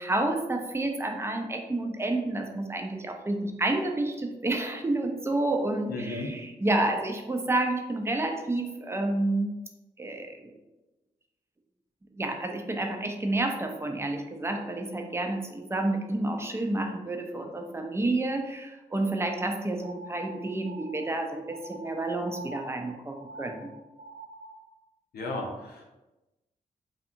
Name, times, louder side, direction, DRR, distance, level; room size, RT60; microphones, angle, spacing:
voice 1, 0.0-9.5 10.0-10.5 12.2-23.7, right 2 dB, 15° right, 3 dB, 0.5 m, -30 dB
voice 2, 5.9-6.3 25.1-25.8, left 2 dB, 85° left, 0 dB, 0.6 m, -34 dB
sound 1, 19.8-24.7, right 1 dB, 70° right, 0.9 m, -46 dB
2.7 x 2.4 x 2.5 m, 1.0 s
supercardioid pair, 45°, 16 cm